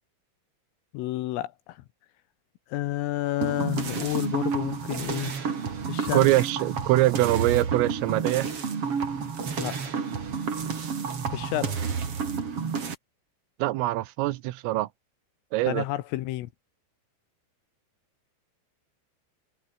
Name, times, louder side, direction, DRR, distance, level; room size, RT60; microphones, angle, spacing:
voice 1, 0.9-1.8 2.7-5.3 5.9-6.3 9.6-9.8 11.3-11.8 15.7-16.5, left 15 dB, 80° left, 3.7 m, -30 dB
sound 1, 3.4-12.9, right 6 dB, 35° right, 3.0 m, -30 dB
voice 2, 6.1-8.5 13.6-14.9 15.5-15.9, right 17 dB, 80° right, 3.6 m, -23 dB
omnidirectional pair, 6.0 m